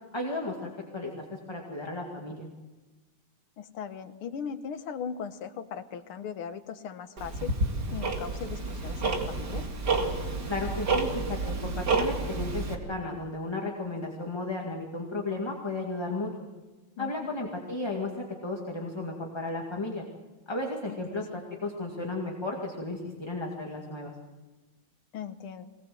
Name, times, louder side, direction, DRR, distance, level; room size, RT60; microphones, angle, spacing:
voice 1, 0.1-2.5 10.5-16.3 17.0-20.0 20.5-24.1, left 2 dB, 15° left, 0 dB, 2.1 m, -34 dB
voice 2, 3.6-7.6 7.9-9.6 17.0-17.3 20.9-21.4 25.1-25.7, left 7 dB, 85° left, 10 dB, 2.0 m, -39 dB
Tick-tock, 7.2-12.7, right 3 dB, 50° right, 2.8 m, -30 dB
23.0 x 20.0 x 7.8 m, 1.2 s
omnidirectional pair, 2.3 m